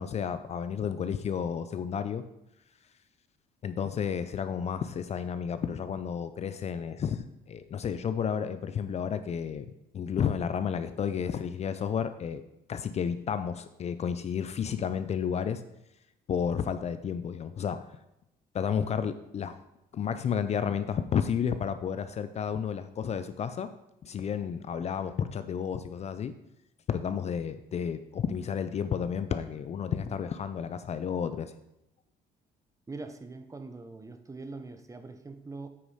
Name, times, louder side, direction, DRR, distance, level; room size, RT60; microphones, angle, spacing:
voice 1, 0.0-2.2 3.6-9.7 9.9-12.4 12.7-15.6 16.3-17.8 18.5-19.6 19.9-23.7 24.0-26.3 26.9-31.5, left 7 dB, 40° left, 11 dB, 0.5 m, -31 dB
voice 2, 32.9-35.7, right 3 dB, 20° right, 9 dB, 0.8 m, -42 dB
8.6 x 4.9 x 5.5 m, 0.86 s
cardioid pair, 110°, 17 cm